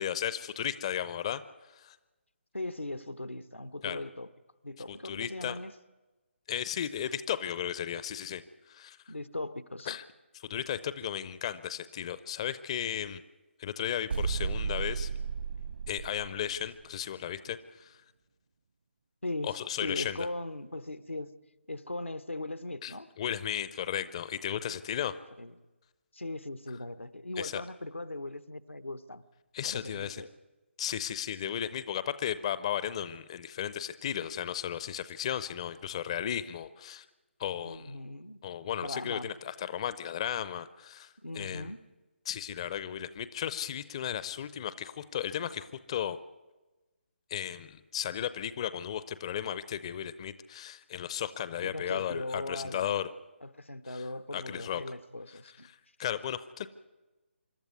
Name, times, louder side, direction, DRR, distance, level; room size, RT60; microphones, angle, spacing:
voice 1, 0.0-1.4 1.7-2.0 3.8-4.0 4.9-5.5 6.5-8.4 8.7-9.0 9.9-10.0 10.3-13.2 13.6-15.1 15.9-18.0 19.4-20.3 22.8-25.2 27.4-27.6 29.5-30.2 30.8-37.1 37.4-38.0 38.4-41.7 42.3-46.2 47.3-53.1 53.9-54.0 54.3-54.8 55.6-56.7, left 10 dB, 30° left, 0.6 m, -35 dB
voice 2, 2.5-4.3 4.6-5.7 9.1-10.0 19.2-21.3 21.7-23.1 25.4-25.5 26.1-29.2 29.6-30.3 37.6-38.4 38.8-39.3 41.2-41.8 51.6-53.0 53.4-55.7, left 2 dB, 80° left, 1.0 m, -39 dB
sound 1, 14.1-16.8, right 5 dB, 55° right, 1.3 m, -34 dB
26.0 x 12.0 x 9.5 m
figure-of-eight pair, 145°, 7 cm